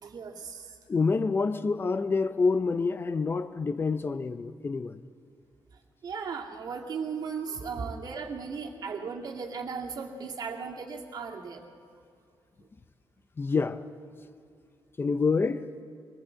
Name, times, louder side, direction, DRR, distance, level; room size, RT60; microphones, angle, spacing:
voice 1, 0.0-0.7 6.0-11.6, right 5 dB, 60° right, 2.2 m, -36 dB
voice 2, 0.9-5.0 9.0-9.1 13.4-13.8 15.0-15.7, left 4 dB, 30° left, 0.6 m, -27 dB
22.5 x 20.0 x 7.5 m
wide cardioid pair, 155°, 8 cm